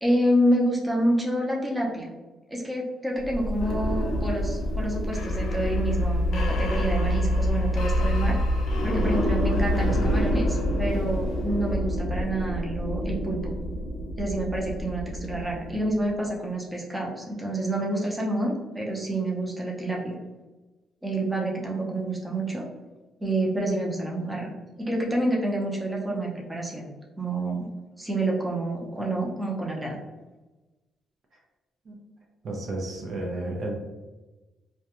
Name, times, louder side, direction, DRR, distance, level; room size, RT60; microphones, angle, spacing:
voice 1, 0.0-2.1 2.5-8.4 8.8-13.6 14.2-20.1 21.0-22.6 23.2-24.5 24.8-26.9 27.2-27.7 28.0-30.0, right 1 dB, 15° right, -2 dB, 0.6 m, -28 dB
sound 1, 3.2-16.0, equal, 75° left, 0.5 m, -26 dB
voice 2, 32.4-33.7, right 2 dB, 55° right, 0 dB, 0.5 m, -32 dB
2.3 x 2.2 x 2.8 m, 1.1 s
cardioid pair, 90°, 0 cm